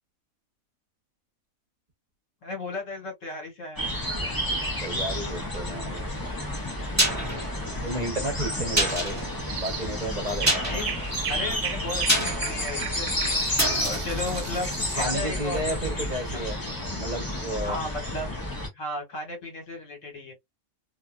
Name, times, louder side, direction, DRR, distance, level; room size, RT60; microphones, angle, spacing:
voice 1, 2.4-3.9 10.6-10.9 11.3-16.4 17.6-18.3 18.7-20.3, left 2 dB, 65° left, 1.8 m, -35 dB
sound 1, 3.8-18.7, left 1 dB, 20° left, 0.8 m, -31 dB
voice 2, 4.8-6.0 7.2-7.4 7.8-9.2 9.6-10.6 15.0-16.6 16.9-17.8, right 1 dB, 35° right, 0.9 m, -32 dB
sound 2, 6.6-15.4 15.7-15.8, right 1 dB, 10° right, 1.3 m, -30 dB
sound 3, 8.8-9.1 9.5-9.9 10.3-15.2, right 8 dB, 70° right, 1.0 m, -36 dB
2.8 x 2.6 x 2.2 m
omnidirectional pair, 1.5 m